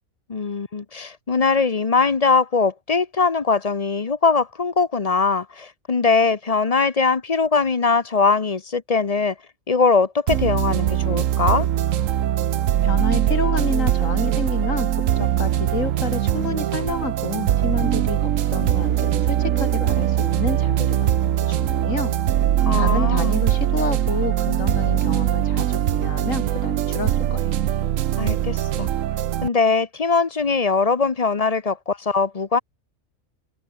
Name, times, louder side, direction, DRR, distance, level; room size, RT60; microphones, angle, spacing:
voice 1, 0.3-9.3 9.7-11.7 22.7-23.4 28.2-28.9 29.4-32.6, left 4 dB, 30° left, 0.9 m, -21 dB
sound 1, 10.3-29.5, right 11 dB, 70° right, 1.1 m, -21 dB
voice 2, 12.8-22.1 22.7-27.6, left 4 dB, 65° left, 2.6 m, -29 dB
omnidirectional pair, 1.4 m